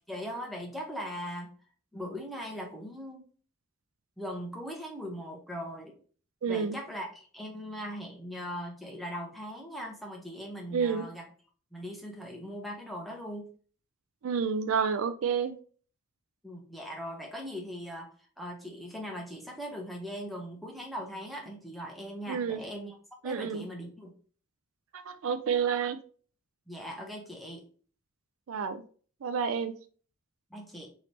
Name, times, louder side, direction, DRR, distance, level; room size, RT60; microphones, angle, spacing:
voice 1, 0.1-1.5 1.9-3.2 4.2-6.0 6.5-11.2 11.7-13.5 16.4-18.1 18.4-22.9 23.2-24.1 26.7-27.7 30.5-30.9, equal, ahead, 0 dB, 0.8 m, -40 dB
voice 2, 6.4-6.8 10.7-11.1 14.2-15.6 22.3-22.6 23.2-23.6 24.9-26.0 28.5-28.8 29.2-29.7, right 6 dB, 70° right, 10 dB, 0.4 m, -29 dB
3.2 x 2.9 x 4.1 m, 0.42 s
head